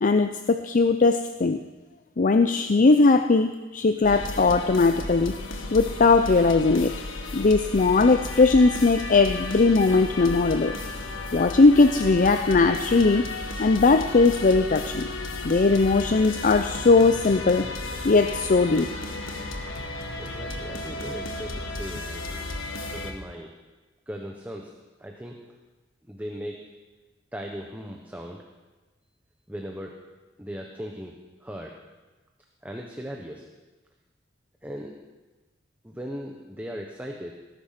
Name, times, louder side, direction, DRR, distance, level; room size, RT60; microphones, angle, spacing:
voice 1, 0.0-1.6 2.2-5.3 5.7-7.0 7.3-10.7 11.3-13.3 13.6-15.1 15.4-17.7 18.0-18.9, left 3 dB, 45° left, 9 dB, 0.5 m, -19 dB
sound 1, 4.0-23.1, left 2 dB, 90° left, 1.6 m, -34 dB
voice 2, 20.2-22.4 22.9-23.5 24.1-24.7 25.0-25.4 26.1-26.6 27.3-28.4 29.5-29.9 30.4-31.1 31.4-31.8 32.6-33.5 34.6-34.9 35.8-37.3, equal, 10° right, 0 dB, 1.1 m, -38 dB
18.0 x 10.5 x 5.9 m, 1.2 s
head